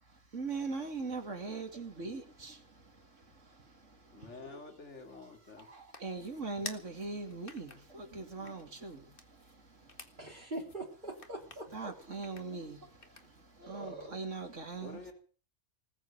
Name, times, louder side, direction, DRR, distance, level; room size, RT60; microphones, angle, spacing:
voice 1, 0.3-4.6 5.6-10.2 11.7-15.0, right 4 dB, 80° right, 3.0 m, -42 dB
voice 2, 4.1-5.7 14.8-15.1, left 3 dB, 70° left, 3.3 m, -48 dB
sound 1, 4.9-13.6, left 3 dB, 45° left, 2.0 m, -53 dB
voice 3, 10.2-11.9 13.6-14.2, right 1 dB, 40° right, 3.5 m, -43 dB
20.0 x 8.0 x 9.0 m
omnidirectional pair, 1.3 m